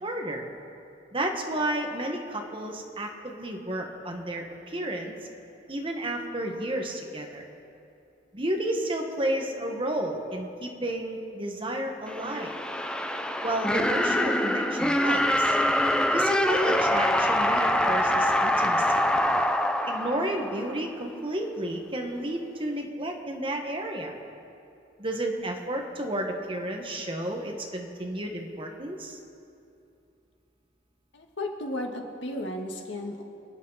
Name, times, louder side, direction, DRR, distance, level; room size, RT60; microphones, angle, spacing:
voice 1, 0.0-0.4 1.1-5.1 5.7-7.5 8.3-12.6 13.4-15.5 16.1-19.0 19.9-24.1 25.0-29.2, right 1 dB, 30° right, 2 dB, 1.6 m, -32 dB
sound 1, 12.1-20.9, left 1 dB, 5° left, 0.6 m, -25 dB
voice 2, 31.1-33.2, left 1 dB, 80° left, 2 dB, 1.9 m, -34 dB
28.0 x 9.6 x 4.2 m, 2.7 s
head